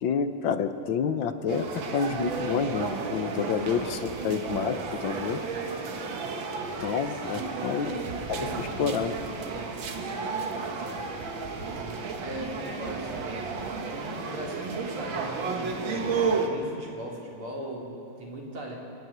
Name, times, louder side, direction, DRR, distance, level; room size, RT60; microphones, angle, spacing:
voice 1, 0.0-5.4 6.8-9.1, left 6 dB, 70° left, 10 dB, 1.6 m, -29 dB
sound 1, 1.5-16.5, right 4 dB, 65° right, 2.1 m, -32 dB
voice 2, 7.1-7.4 12.2-18.7, right 1 dB, 90° right, -2 dB, 4.4 m, -39 dB
27.0 x 11.0 x 9.1 m, 2.9 s
omnidirectional pair, 2.3 m